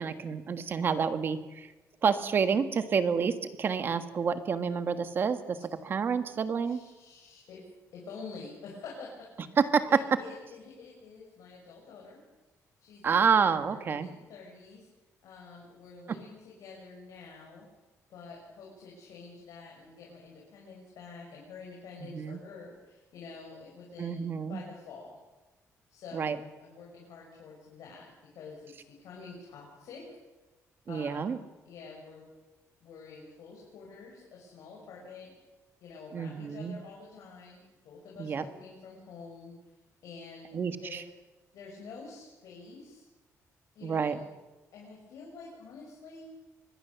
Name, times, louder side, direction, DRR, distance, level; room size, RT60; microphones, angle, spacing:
voice 1, 0.0-1.7 2.0-5.6 5.8-6.8 9.6-10.0 13.0-14.1 16.1-16.2 22.0-22.4 24.0-24.6 26.1-26.4 30.9-31.4 36.1-36.8 38.2-38.4 40.5-41.0 43.8-44.2, right 6 dB, 40° right, 10 dB, 1.5 m, -28 dB
voice 2, 6.6-7.6 7.9-9.3 9.8-12.2 12.8-14.9 15.2-17.7 18.1-25.2 25.9-30.1 30.9-31.3 31.6-32.3 32.8-35.3 35.8-39.6 40.0-41.0 41.5-43.1 43.7-44.2 44.7-46.3, left 4 dB, 75° left, -2 dB, 6.3 m, -48 dB
25.5 x 21.0 x 7.1 m, 1.1 s
cardioid pair, 170°, 6 cm